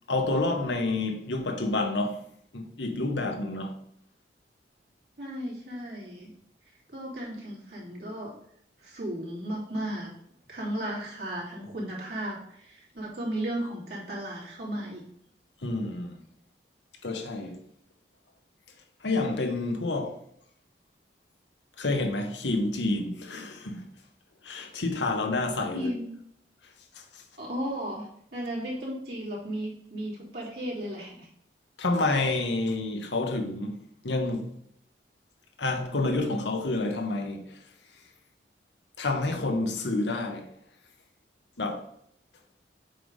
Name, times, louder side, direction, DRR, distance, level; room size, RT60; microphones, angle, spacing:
voice 1, 0.1-2.2 2.5-3.7 15.6-16.2 17.0-17.6 19.0-20.2 21.8-23.9 24.4-25.9 26.9-27.2 31.8-33.8 34.0-34.5 35.6-37.6 39.0-40.5 41.6-41.8, left 2 dB, 80° left, 1.1 m, -29 dB
voice 2, 5.2-6.3 6.9-8.3 8.8-10.1 10.5-15.0 25.7-26.1 27.4-31.3, right 1 dB, 60° right, 2.7 m, -35 dB
7.6 x 3.4 x 5.2 m
head